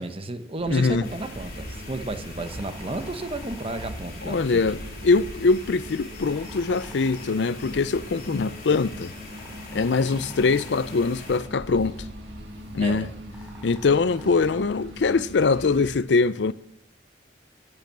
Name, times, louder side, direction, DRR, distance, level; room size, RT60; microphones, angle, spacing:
voice 1, 0.0-4.6 8.3-8.5 10.2-10.3 12.8-13.1, right 2 dB, 30° right, 0.9 m, -33 dB
sound 1, 0.6-16.0, equal, 75° right, 1.9 m, -41 dB
voice 2, 0.7-1.1 4.2-9.1 9.7-12.0 12.7-13.1 13.6-16.5, left 4 dB, 70° left, 0.5 m, -23 dB
sound 2, 1.0-11.4, left 3 dB, 55° left, 3.6 m, -44 dB
sound 3, 2.2-14.9, right 1 dB, 5° right, 5.1 m, -51 dB
11.0 x 9.7 x 7.4 m
head